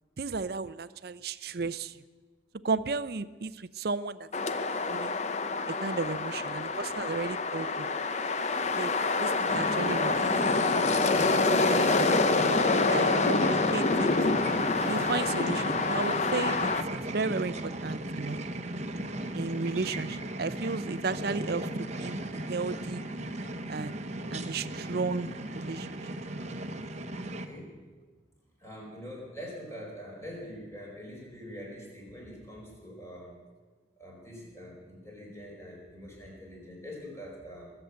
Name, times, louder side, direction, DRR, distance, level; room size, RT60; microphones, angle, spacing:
voice 1, 0.2-2.0 2.6-4.6 4.9-5.1 5.7-7.9 8.3-8.5 8.8-8.9 9.2-10.2 10.4-10.6 11.0-12.6 12.9-14.1 14.9-18.4 19.3-22.2 22.5-23.0 23.7-24.0 24.3-25.3 25.5-26.1, right 4 dB, 55° right, 15 dB, 0.6 m, -34 dB
sound 1, 4.3-16.8, left 3 dB, 35° left, 0.7 m, -27 dB
sound 2, 9.5-27.5, right 1 dB, 35° right, 1.1 m, -36 dB
voice 2, 27.3-27.8 28.6-33.4 34.0-37.7, equal, 15° left, -2 dB, 4.7 m, -44 dB
22.0 x 7.9 x 8.1 m, 1.4 s
head